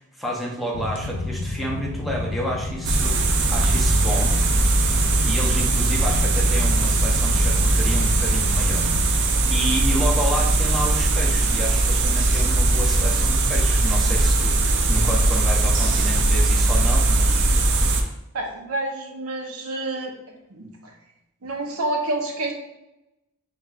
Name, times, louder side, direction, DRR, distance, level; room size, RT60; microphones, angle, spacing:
voice 1, 0.0-4.3 5.2-17.5 17.9-18.1, equal, ahead, -4 dB, 0.6 m, -30 dB
sound 1, 0.7-9.1, left 2 dB, 60° left, 0.4 m, -31 dB
sound 2, 2.8-18.0, right 2 dB, 55° right, 0.4 m, -20 dB
voice 2, 18.3-20.1 20.5-20.7 21.4-22.5, right 2 dB, 85° right, 2 dB, 0.7 m, -28 dB
5.8 x 2.5 x 2.3 m, 0.90 s
head